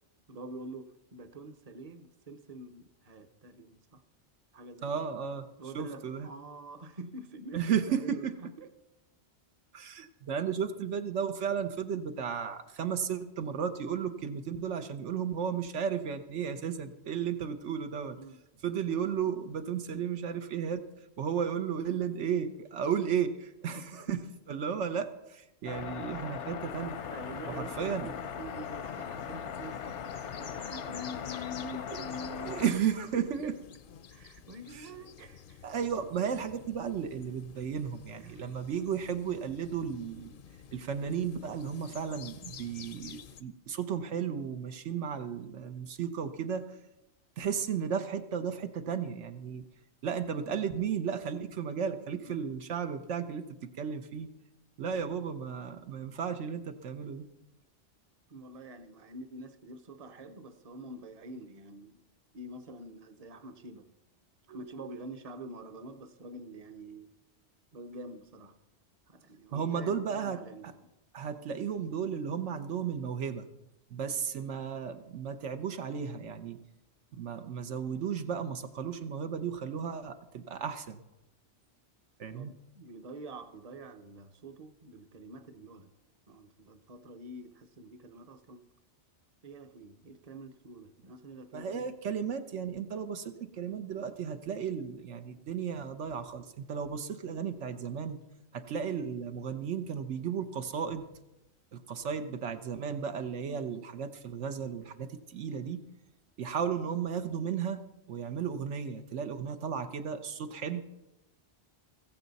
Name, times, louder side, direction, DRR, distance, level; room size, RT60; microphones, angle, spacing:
voice 1, 0.3-4.0 4.5-5.1 5.6-8.7 18.2-18.4 23.7-24.3 27.1-30.0 30.4-32.7 33.1-33.5 34.1-35.6 38.2-38.5 52.1-52.6 58.3-62.0 62.3-63.9 64.5-67.1 67.7-68.6 69.1-70.9 82.3-85.9 86.3-88.7 89.4-91.9 103.4-103.7, right 1 dB, 35° right, 9 dB, 0.8 m, -46 dB
voice 2, 4.8-5.5 5.7-6.3 7.5-8.3 9.7-18.2 18.6-20.8 21.2-24.2 24.5-27.0 27.5-28.1 32.4-33.5 34.7-34.9 35.6-40.4 40.7-46.6 47.4-49.6 50.0-53.4 53.8-54.3 54.8-57.3 69.5-70.4 70.6-70.7 71.1-73.5 73.9-76.6 77.2-81.0 82.2-82.5 91.5-98.2 98.5-101.0 101.7-105.8 106.4-107.8 108.1-110.8, right 7 dB, 85° right, 8 dB, 1.1 m, -34 dB
sound 1, 25.7-32.7, left 7 dB, 80° left, 1.1 m, -39 dB
sound 2, 26.7-43.4, left 8 dB, 55° left, 0.7 m, -51 dB
16.0 x 14.5 x 4.1 m, 0.93 s
omnidirectional pair, 1.2 m